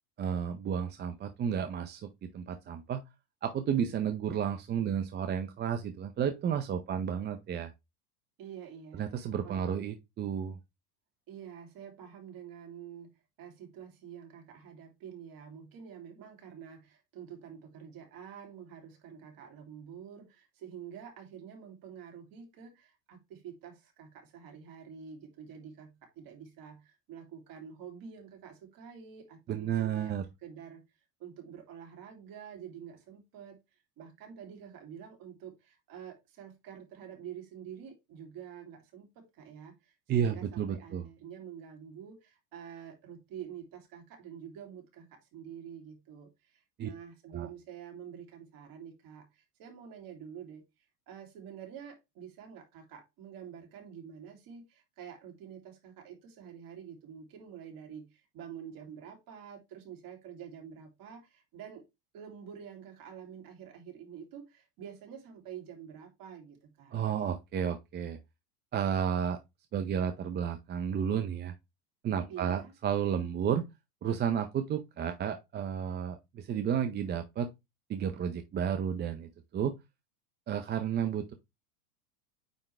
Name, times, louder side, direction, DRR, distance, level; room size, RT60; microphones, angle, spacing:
voice 1, 0.2-3.0 3.4-7.7 8.9-10.6 29.5-30.3 40.1-41.1 46.8-46.9 47.3-47.5 66.9-68.2 68.7-69.4 69.7-71.5 72.0-73.6 74.0-77.5 77.9-79.7 80.5-81.3, right 8 dB, 20° right, 0.6 m, -32 dB
voice 2, 8.4-9.1 9.4-9.7 11.3-13.1 13.4-30.1 30.4-30.8 31.2-33.6 34.0-50.6 51.1-61.8 62.1-66.9 72.3-72.7, right 8 dB, 45° right, 3.0 m, -48 dB
9.2 x 3.7 x 3.3 m
hypercardioid pair, 115°, 48 cm